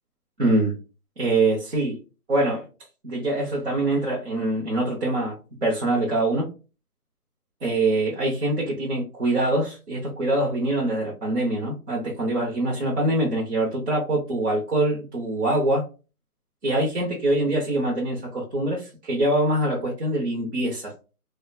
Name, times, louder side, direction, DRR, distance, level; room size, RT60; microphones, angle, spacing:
voice 1, 0.4-0.8 1.2-2.0 2.3-2.6 3.0-6.5 7.6-15.8 16.6-20.9, right 2 dB, 45° right, 0.7 m, -24 dB
2.4 x 2.1 x 2.4 m
hypercardioid pair, 165°, 45 cm